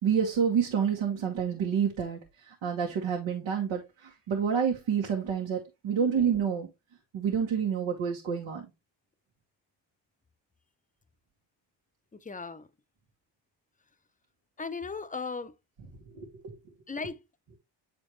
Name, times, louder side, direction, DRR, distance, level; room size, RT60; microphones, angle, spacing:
voice 1, 0.0-6.7 7.1-8.7 16.1-16.3, right 7 dB, 85° right, 1.7 m, -28 dB
voice 2, 12.1-12.7 14.6-15.5 16.9-17.2, left 4 dB, 15° left, 0.6 m, -37 dB
8.7 x 4.3 x 3.1 m
cardioid pair, 85°, 46 cm